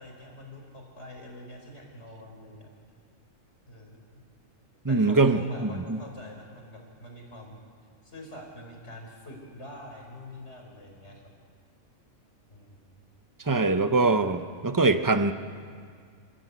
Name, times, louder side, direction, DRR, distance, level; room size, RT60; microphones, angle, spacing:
voice 1, 0.0-2.7 3.7-4.2 4.9-7.6 8.0-11.3 12.5-13.0 13.8-14.5, left 1 dB, 55° left, 1 dB, 4.8 m, -46 dB
voice 2, 4.8-6.0 13.5-15.3, right 3 dB, 20° right, 9 dB, 0.8 m, -23 dB
28.0 x 14.0 x 8.2 m, 2.1 s
omnidirectional pair, 1.4 m